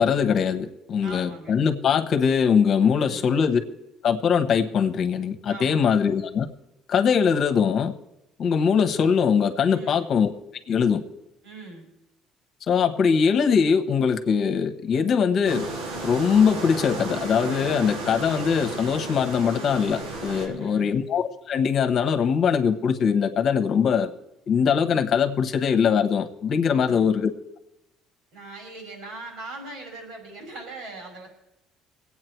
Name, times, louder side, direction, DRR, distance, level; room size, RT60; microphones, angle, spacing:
voice 1, 0.0-3.6 4.0-6.5 6.9-7.9 8.4-10.3 10.7-11.0 12.7-15.7 16.0-24.1 24.5-27.3, left 6 dB, 50° left, 8 dB, 1.2 m, -22 dB
voice 2, 1.0-1.6 2.9-3.4 5.5-6.0 9.7-10.1 11.4-11.9 20.4-20.9 26.7-27.1 28.3-31.3, right 2 dB, 70° right, 2 dB, 5.4 m, -41 dB
sound 1, 15.4-20.5, right 2 dB, 85° right, 3.1 m, -33 dB
22.0 x 8.7 x 4.6 m, 0.87 s
cardioid pair, 125°, 0 cm